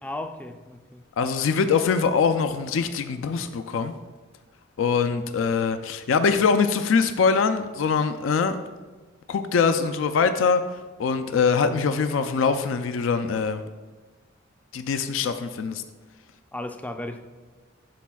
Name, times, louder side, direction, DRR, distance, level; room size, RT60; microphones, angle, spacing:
voice 1, 0.0-1.0 16.5-17.2, left 1 dB, 10° left, 0.3 m, -35 dB
voice 2, 1.2-3.9 4.8-8.6 9.3-10.6 11.0-13.6 14.7-15.8, left 5 dB, 75° left, 0.4 m, -23 dB
11.5 x 4.1 x 2.3 m
head